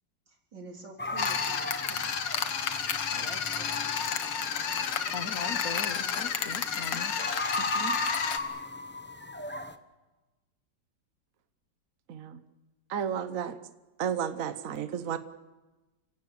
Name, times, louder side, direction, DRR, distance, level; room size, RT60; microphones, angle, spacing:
voice 1, 0.3-2.0 3.1-4.2, right 2 dB, 80° right, 1 dB, 4.4 m, -47 dB
sound 1, 1.0-9.8, left 1 dB, 10° left, 0.5 m, -38 dB
sound 2, 1.2-8.4, left 7 dB, 80° left, 2.0 m, -31 dB
voice 2, 5.1-7.1, left 6 dB, 55° left, 11 dB, 1.3 m, -39 dB
voice 3, 7.6-7.9 12.1-12.4 12.9-13.6 14.0-15.2, right 8 dB, 55° right, 11 dB, 1.2 m, -33 dB
28.5 x 16.5 x 8.0 m, 1.2 s
omnidirectional pair, 1.9 m